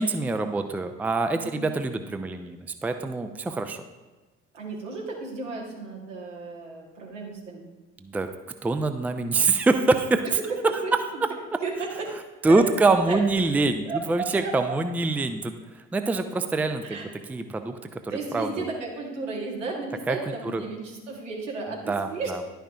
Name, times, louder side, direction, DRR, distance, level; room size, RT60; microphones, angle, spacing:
voice 1, 0.0-3.8 8.0-8.3 8.6-10.2 12.4-15.5 15.9-18.7 20.1-20.2 20.5-20.6 21.9-22.4, right 3 dB, 5° right, 8 dB, 0.4 m, -25 dB
voice 2, 4.5-7.7 10.8-11.2 11.6-12.0 12.5-12.6 13.1-13.2 13.8-14.8 16.8-17.1 18.1-22.3, right 3 dB, 80° right, -2 dB, 1.3 m, -34 dB
11.0 x 5.6 x 2.4 m, 1.2 s
figure-of-eight pair, 45°, 37 cm